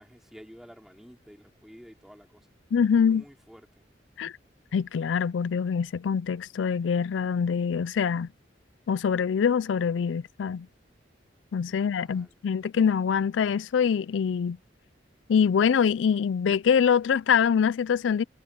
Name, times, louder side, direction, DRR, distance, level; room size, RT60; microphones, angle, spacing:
voice 1, 0.0-2.6 2.9-3.9 11.7-12.4, equal, ahead, 4.3 m, -51 dB
voice 2, 2.7-3.2 4.2-4.3 4.7-8.3 8.9-10.7 11.5-14.6 15.3-18.2, left 7 dB, 80° left, 0.4 m, -24 dB
head